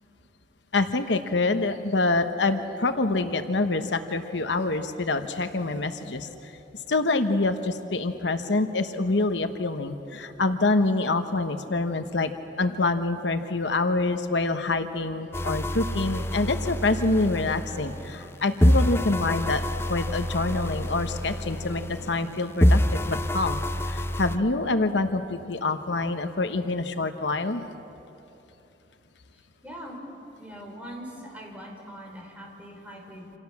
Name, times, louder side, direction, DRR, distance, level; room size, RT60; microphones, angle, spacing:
voice 1, 0.7-6.5 6.9-12.3 12.6-19.6 19.9-27.6, left 3 dB, 70° left, 8 dB, 1.1 m, -26 dB
sound 1, 15.3-18.3 18.6-22.3 22.6-24.4, left 1 dB, 15° left, 0.6 m, -26 dB
voice 2, 29.3-30.0 30.4-33.3, equal, 10° right, -1 dB, 5.1 m, -42 dB
28.0 x 27.0 x 7.3 m, 2.9 s
head